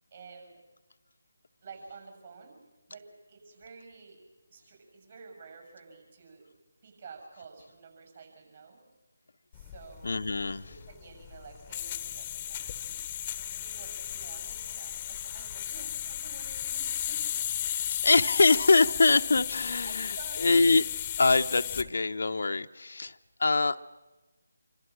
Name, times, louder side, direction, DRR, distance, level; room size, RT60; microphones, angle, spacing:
voice 1, 0.1-0.6 1.6-2.6 2.9-4.2 4.5-6.5 6.8-8.8 9.5-10.1 10.9-13.0 13.5-17.2 19.4-19.5 19.9-20.6, right 5 dB, 45° right, 4 dB, 6.8 m, -50 dB
sound 1, 9.5-21.9, left 11 dB, 20° left, 1.0 m, -35 dB
voice 2, 10.0-10.7 17.9-20.8 21.2-23.8, left 3 dB, 60° left, 9 dB, 0.7 m, -24 dB
26.5 x 25.0 x 6.4 m, 1.2 s
figure-of-eight pair, 155°, 0 cm